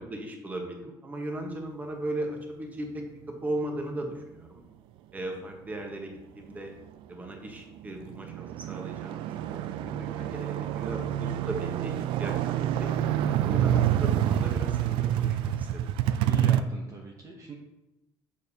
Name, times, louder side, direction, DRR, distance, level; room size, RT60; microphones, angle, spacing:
voice 1, 0.0-4.6 5.1-6.7 7.1-11.9 12.2-12.3 12.6-12.9 13.4-15.8, right 1 dB, 20° right, 2 dB, 1.1 m, -37 dB
sound 1, 7.3-7.4 7.8-16.6, right 11 dB, 75° right, 0.4 m, -27 dB
voice 2, 16.2-17.5, right 4 dB, 35° right, 0 dB, 0.8 m, -42 dB
7.0 x 6.5 x 2.8 m, 0.95 s
cardioid pair, 140°, 9 cm